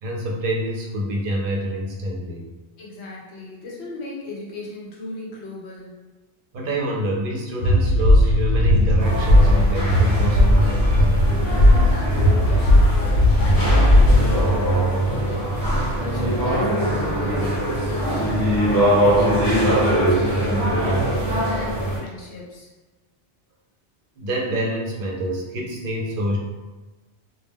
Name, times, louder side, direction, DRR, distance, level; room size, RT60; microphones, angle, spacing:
voice 1, 0.0-2.4 6.5-10.9 24.2-26.4, equal, 60° right, -2 dB, 0.6 m, -26 dB
voice 2, 2.8-5.9 11.5-22.7, left 2 dB, 70° left, -4 dB, 1.0 m, -36 dB
sound 1, 7.6-14.4, left 1 dB, 90° left, 0.9 m, -17 dB
sound 2, 9.0-22.0, right 1 dB, 25° left, 0.6 m, -21 dB
2.2 x 2.1 x 3.4 m, 1.2 s
omnidirectional pair, 1.2 m